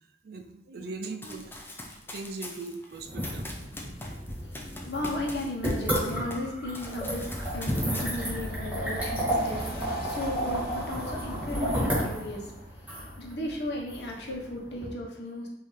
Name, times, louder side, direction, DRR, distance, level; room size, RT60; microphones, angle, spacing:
voice 1, 0.2-1.5 2.1-4.2, right 3 dB, 60° right, 5 dB, 0.4 m, -40 dB
Run, 1.2-6.5 6.7-8.5, left 1 dB, 10° left, 0.5 m, -42 dB
sound 1, 3.0-14.9, equal, 10° right, 1.6 m, -32 dB
voice 2, 4.4-9.6 10.0-12.5 13.2-15.5, left 1 dB, 75° left, -1 dB, 0.9 m, -35 dB
sound 2, 9.3-12.8, left 1 dB, 55° left, 0.6 m, -49 dB
5.4 x 2.7 x 3.2 m, 0.84 s
head